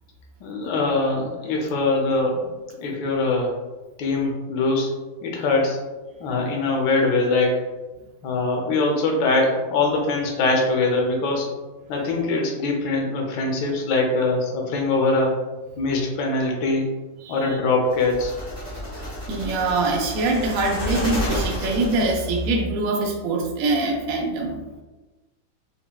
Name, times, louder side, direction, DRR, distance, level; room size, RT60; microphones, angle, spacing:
voice 1, 0.4-2.5 2.8-3.5 4.0-4.9 5.2-5.8 6.2-7.6 8.2-11.5 11.9-15.4 15.8-16.9 17.3-18.3, left 3 dB, 70° left, 0 dB, 1.2 m, -22 dB
sound 1, 17.9-22.5, equal, 20° left, 0.6 m, -30 dB
voice 2, 19.3-24.6, right 2 dB, 85° right, 0 dB, 0.7 m, -24 dB
5.5 x 2.1 x 2.3 m, 1.2 s
omnidirectional pair, 2.2 m